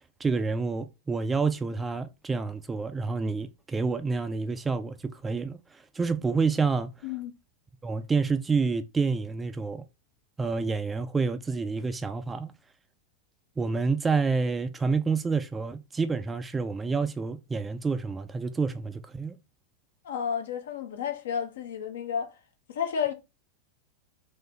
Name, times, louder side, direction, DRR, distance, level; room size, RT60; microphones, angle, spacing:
voice 1, 0.2-6.9 7.8-9.8 10.4-12.5 13.6-19.3, right 4 dB, 15° right, 0.3 m, -28 dB
voice 2, 20.0-22.4 22.7-23.1, left 7 dB, 60° left, 0.7 m, -31 dB
3.8 x 2.9 x 2.7 m
figure-of-eight pair, 90°, 0 cm